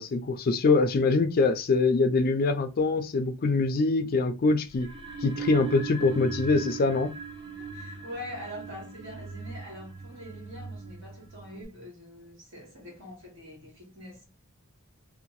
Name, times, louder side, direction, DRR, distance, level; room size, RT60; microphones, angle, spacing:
voice 1, 0.0-4.9 5.2-7.1, left 3 dB, 45° left, 0.4 m, -24 dB
sound 1, 4.7-11.6, right 4 dB, 20° right, 0.6 m, -39 dB
voice 2, 7.5-14.2, left 1 dB, 65° right, 1.5 m, -44 dB
2.7 x 2.1 x 3.0 m
head